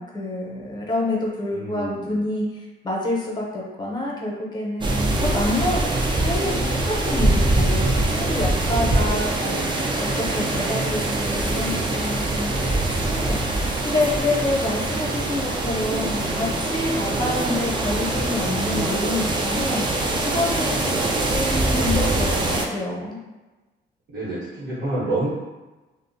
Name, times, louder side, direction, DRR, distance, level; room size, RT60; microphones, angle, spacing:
voice 1, 0.0-5.8 6.2-12.7 13.0-23.2, left 2 dB, 20° left, -3 dB, 0.7 m, -27 dB
voice 2, 1.5-2.3 8.9-9.3 12.3-12.9 17.1-17.4 20.8-21.2 24.1-25.3, right 2 dB, 65° right, -10 dB, 0.9 m, -30 dB
sound 1, 4.8-22.7, right 2 dB, 25° right, 0.4 m, -23 dB
2.5 x 2.0 x 2.5 m, 1.2 s
cardioid pair, 90°, 20 cm